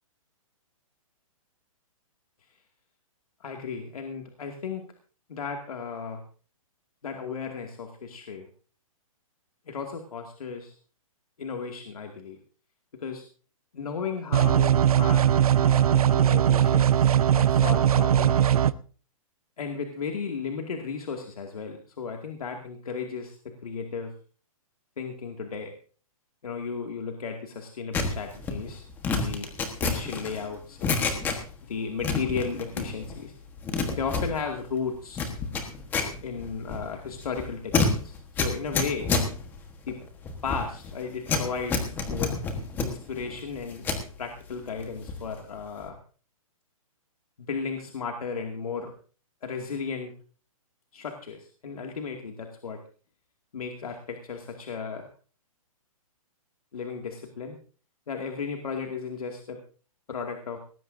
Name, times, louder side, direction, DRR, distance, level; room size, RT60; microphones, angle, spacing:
voice 1, 3.4-4.9 5.3-6.2 7.0-8.5 9.7-10.8 11.4-12.4 12.9-13.2 13.7-18.5 19.6-24.1 25.0-25.7 26.4-28.9 29.2-31.0 31.6-33.3 33.9-35.3 36.2-39.1 39.9-40.0 40.4-42.3 42.8-43.9 44.2-46.0 47.4-48.9 49.4-50.1 50.9-52.8 53.5-55.1 56.7-57.6 58.1-59.6 60.1-60.6, left 5 dB, 90° left, 2 dB, 2.3 m, -35 dB
sound 1, 14.3-18.7, right 10 dB, 85° right, 0.7 m, -20 dB
sound 2, 27.9-31.7 32.0-33.2 33.5-44.1 44.5-45.3 45.6-45.9, left 4 dB, 10° left, 1.3 m, -29 dB
18.5 x 16.0 x 2.7 m, 0.39 s
hypercardioid pair, 170°, 18 cm